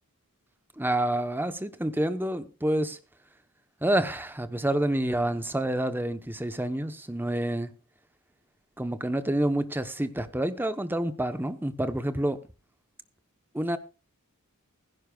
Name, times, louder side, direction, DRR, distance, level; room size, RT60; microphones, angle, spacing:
voice 1, 0.8-3.0 3.8-7.7 8.8-12.4 13.5-13.8, right 1 dB, 10° right, 0.9 m, -28 dB
16.5 x 15.5 x 2.4 m
head